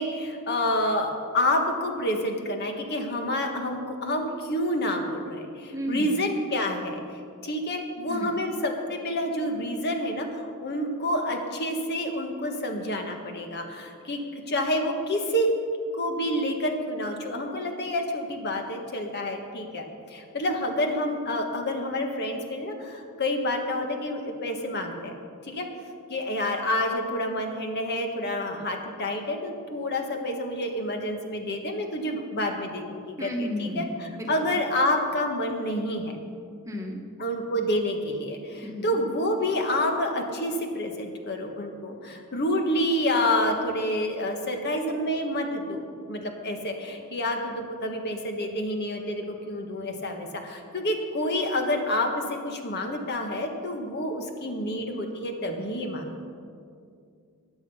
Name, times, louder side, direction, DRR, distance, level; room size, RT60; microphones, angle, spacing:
voice 1, 0.0-7.0 7.4-15.5 15.9-25.2 25.4-25.7 26.1-36.2 37.2-56.2, left 1 dB, 50° left, 3 dB, 1.5 m, -28 dB
voice 2, 5.7-6.1 8.1-8.3 33.2-34.5 36.7-37.0 38.6-38.9, equal, 15° right, 1 dB, 1.3 m, -33 dB
15.5 x 10.0 x 5.6 m, 2.3 s
head